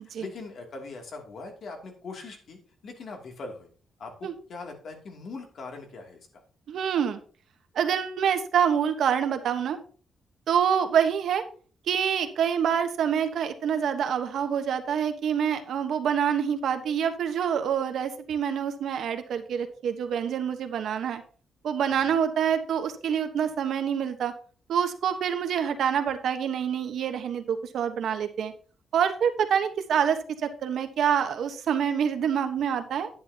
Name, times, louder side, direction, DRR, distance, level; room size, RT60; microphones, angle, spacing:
voice 1, 0.2-3.7 4.0-6.4 22.0-22.2, left 3 dB, 55° left, 3 dB, 2.6 m, -41 dB
voice 2, 6.7-7.2 7.7-9.8 10.5-11.4 11.9-21.2 21.6-24.3 24.7-28.5 28.9-33.1, right 8 dB, 70° right, 8 dB, 1.1 m, -26 dB
10.0 x 9.9 x 2.9 m, 0.40 s
cardioid pair, 130°, 0 cm